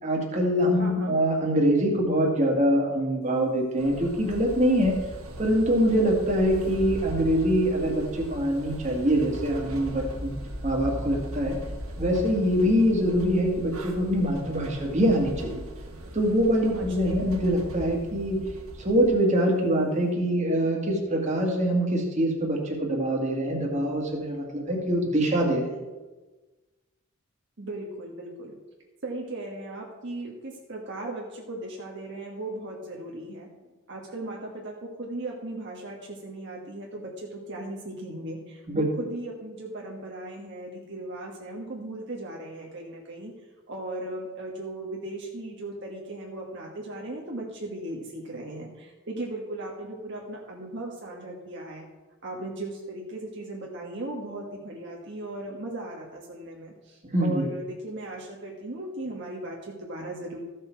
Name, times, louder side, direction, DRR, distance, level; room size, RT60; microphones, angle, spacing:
voice 1, 0.0-5.0 5.4-10.4 10.6-11.6 12.0-15.6 16.1-18.4 18.8-25.8 38.7-38.9 57.1-57.5, equal, 35° right, 0 dB, 1.9 m, -24 dB
voice 2, 0.8-1.2 16.6-17.4 27.6-28.6 29.0-33.5 33.9-43.3 43.7-51.9 52.2-60.4, right 1 dB, 55° right, -1 dB, 1.4 m, -37 dB
sound 1, 3.8-19.1, equal, 85° right, 1.6 m, -38 dB
14.5 x 6.6 x 4.6 m, 1.2 s
head